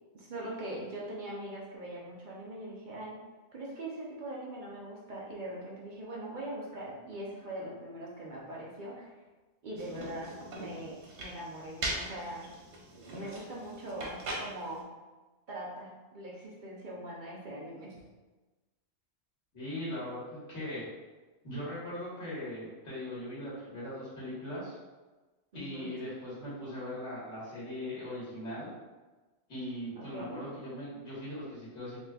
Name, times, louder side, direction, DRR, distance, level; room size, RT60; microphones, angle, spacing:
voice 1, 0.1-3.1 3.5-9.1 9.6-10.9 11.2-12.5 12.9-14.8 15.5-17.9 25.5-26.0 30.0-30.4, right 1 dB, 50° right, -3 dB, 0.7 m, -41 dB
sound 1, 9.8-14.8, right 1 dB, 85° right, 1.0 m, -41 dB
voice 2, 19.5-20.9 21.4-24.8 25.5-28.7 29.5-32.0, left 1 dB, 85° left, -9 dB, 1.9 m, -39 dB
4.0 x 3.1 x 2.3 m, 1.2 s
omnidirectional pair, 1.1 m